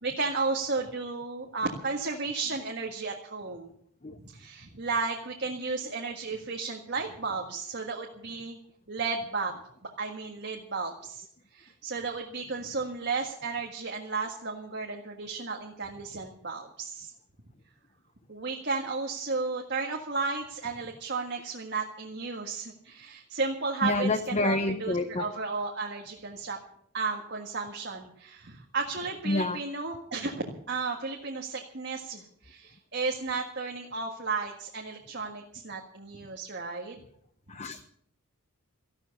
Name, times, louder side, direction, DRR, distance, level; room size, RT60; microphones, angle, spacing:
voice 1, 0.0-3.7 4.3-8.6 8.9-9.5 10.0-11.3 11.5-17.1 18.3-26.6 26.9-37.0, right 4 dB, 50° right, 1 dB, 1.7 m, -33 dB
voice 2, 23.8-25.2 29.3-29.6 37.5-37.8, left 2 dB, 30° left, 9 dB, 0.7 m, -28 dB
15.0 x 12.0 x 7.0 m, 0.68 s
head